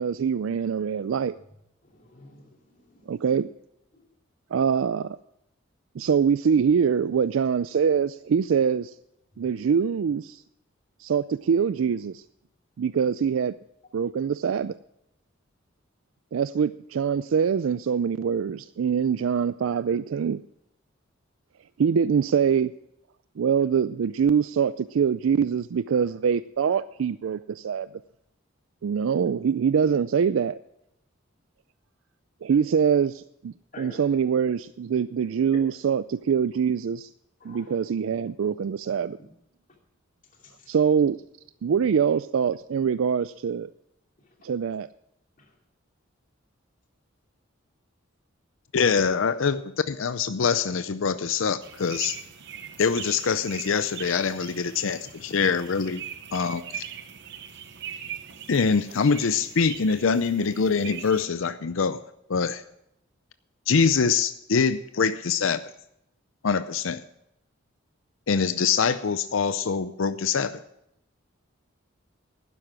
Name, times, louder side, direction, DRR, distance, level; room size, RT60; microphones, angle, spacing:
voice 1, 0.0-1.4 3.1-3.5 4.5-5.2 6.0-8.9 9.4-10.4 11.0-12.2 12.8-13.5 13.9-14.7 16.3-20.4 21.8-22.7 23.4-27.9 28.8-30.6 32.4-37.1 37.4-39.2 40.7-41.2 41.6-43.7 44.4-44.9, right 7 dB, 80° right, 15 dB, 0.4 m, -24 dB
voice 2, 1.9-3.3 33.7-34.0 35.2-35.3 37.4-37.7 40.4-40.6 45.4-45.5, left 2 dB, 40° left, 0 dB, 2.7 m, -48 dB
voice 3, 48.7-52.2 52.8-56.0 56.3-56.8 58.5-62.0 62.3-62.6 63.7-65.6 66.4-67.0 68.3-70.6, left 5 dB, 80° left, 12 dB, 0.6 m, -24 dB
sound 1, 51.6-61.3, right 8 dB, 60° right, 0.9 m, -41 dB
12.0 x 9.9 x 6.2 m, 0.78 s
head